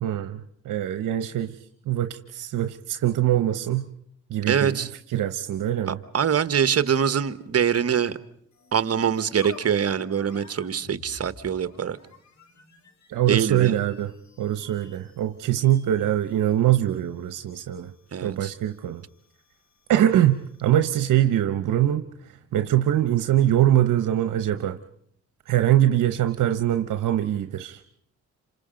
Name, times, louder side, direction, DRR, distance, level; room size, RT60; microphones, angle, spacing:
voice 1, 0.0-3.9 4.3-4.8 5.1-6.0 13.1-14.1 14.4-17.9 18.2-19.0 19.9-24.8 25.5-27.8, right 12 dB, 80° right, 10 dB, 0.9 m, -23 dB
voice 2, 4.5-4.9 5.9-8.2 8.7-12.0 13.3-13.8 18.1-18.5, right 8 dB, 50° right, 13 dB, 1.3 m, -24 dB
sound 1, 8.5-21.0, left 4 dB, 60° left, 3.5 m, -52 dB
28.5 x 26.0 x 5.2 m, 0.67 s
cardioid pair, 70°, 31 cm